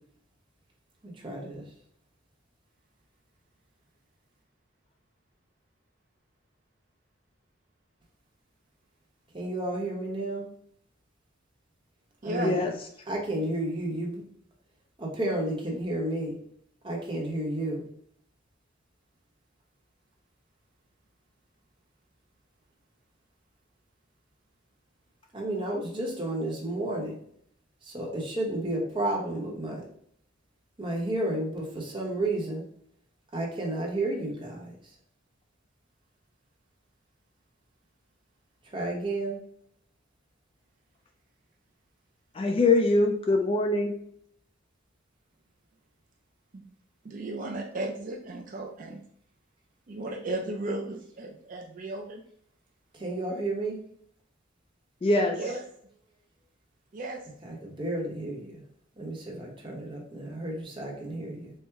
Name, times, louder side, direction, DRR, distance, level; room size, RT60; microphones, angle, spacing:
voice 1, 1.0-1.6 9.3-10.5 12.2-12.6 13.1-14.2 15.0-16.4 16.8-17.9 25.3-27.2 27.8-29.8 30.8-32.6 33.3-34.8 38.7-39.4 52.9-53.8 57.4-58.6 59.0-61.5, right 1 dB, 25° right, -1 dB, 0.9 m, -32 dB
voice 2, 12.4-12.7 42.3-43.9 55.0-55.4, left 2 dB, 25° left, 4 dB, 0.3 m, -23 dB
voice 3, 47.0-49.0 49.9-52.2 55.4-55.6 56.9-57.2, right 2 dB, 40° right, 2 dB, 0.4 m, -35 dB
4.4 x 2.1 x 3.4 m, 0.65 s
head